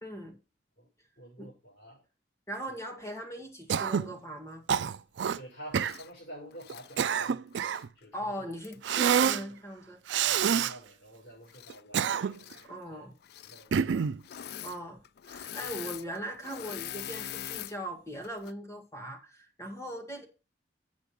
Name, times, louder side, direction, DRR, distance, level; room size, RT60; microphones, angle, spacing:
voice 1, 0.0-0.4 1.4-1.5 2.5-4.6 8.1-10.0 12.6-13.1 14.6-20.3, equal, 15° left, 4 dB, 1.8 m, -40 dB
voice 2, 1.2-2.0 2.7-2.8 5.3-7.4 7.9-8.5 10.2-13.0 13.4-14.1 14.8-14.9, right 1 dB, 80° left, -8 dB, 6.3 m, -49 dB
Cough, 3.7-4.1 4.7-5.4 5.7-6.0 6.7-7.9 8.8-9.4 10.1-10.7 11.7-12.5 13.7-14.2, right 7 dB, 85° right, 0.4 m, -27 dB
Engine / Mechanisms, 5.8-6.1 6.5-7.9 8.6-8.8 11.4-12.0 12.3-12.7 13.2-13.7 14.2-14.8 15.0-17.8 18.2-18.5, left 11 dB, 60° left, 0.4 m, -42 dB
8.6 x 6.0 x 5.8 m, 0.31 s
head